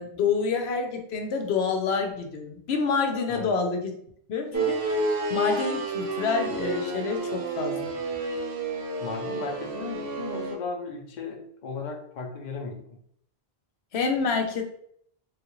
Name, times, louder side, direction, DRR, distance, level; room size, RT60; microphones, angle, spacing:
voice 1, 0.0-3.9 4.3-5.0 5.3-7.9 13.9-14.6, left 5 dB, 85° left, 4 dB, 0.9 m, -27 dB
sound 1, 4.5-10.6, right 2 dB, 70° right, 0.8 m, -30 dB
voice 2, 9.0-12.8, left 4 dB, 50° left, 1 dB, 0.7 m, -36 dB
3.5 x 2.4 x 3.0 m, 0.65 s
omnidirectional pair, 1.1 m